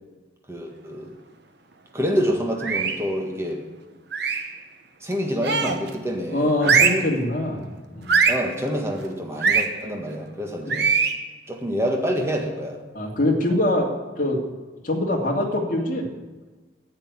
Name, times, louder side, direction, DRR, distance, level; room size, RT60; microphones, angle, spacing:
voice 1, 0.5-1.2 1.9-3.7 5.0-6.8 7.5-7.6 8.3-10.9 11.5-12.8, equal, 15° right, 1 dB, 1.6 m, -27 dB
sound 1, 2.6-3.1 4.1-4.5 5.4-5.9 6.6-7.1 8.1-8.5 9.4-9.7 10.7-11.2, right 5 dB, 55° right, 1.0 m, -21 dB
voice 2, 6.3-7.6 7.9-8.1 12.9-13.9 14.2-14.4 14.8-16.1, left 1 dB, 40° left, 0 dB, 2.2 m, -23 dB
10.5 x 8.3 x 9.5 m, 1.2 s
head